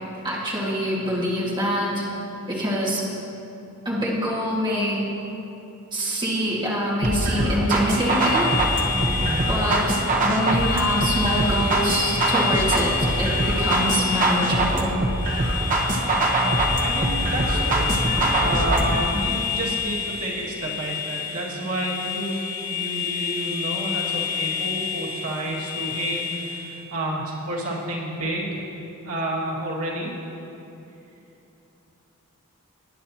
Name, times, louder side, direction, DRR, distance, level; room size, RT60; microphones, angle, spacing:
voice 1, 0.2-2.1 2.5-3.0 3.9-5.0 5.9-8.5 9.5-9.9 10.2-14.9 19.1-19.2, equal, 20° right, -6 dB, 2.0 m, -25 dB
sound 1, 7.0-19.0, right 2 dB, 40° right, 1.1 m, -23 dB
sound 2, 7.6-26.8, left 7 dB, 35° left, 2.7 m, -29 dB
voice 2, 9.1-9.4 16.8-17.9 18.4-28.6 29.0-30.1, right 1 dB, 85° right, -4 dB, 2.0 m, -30 dB
19.5 x 9.4 x 2.9 m, 2.9 s
head